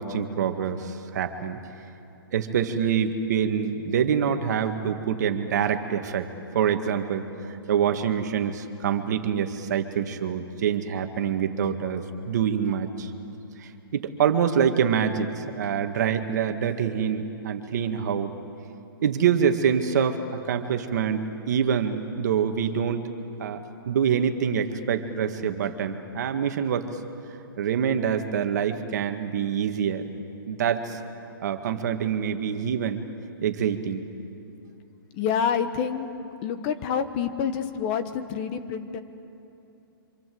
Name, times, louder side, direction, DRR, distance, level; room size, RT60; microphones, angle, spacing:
voice 1, 0.0-1.6 2.3-6.3 6.5-13.1 13.6-18.3 19.0-23.0 23.4-26.9 27.6-30.1 30.5-31.0 31.4-33.0 33.4-34.0, right 8 dB, 45° right, 7 dB, 1.9 m, -26 dB
voice 2, 35.1-36.1 36.4-39.0, left 7 dB, 25° left, 9 dB, 1.0 m, -27 dB
28.0 x 26.5 x 7.9 m, 2.8 s
hypercardioid pair, 170°, 13 cm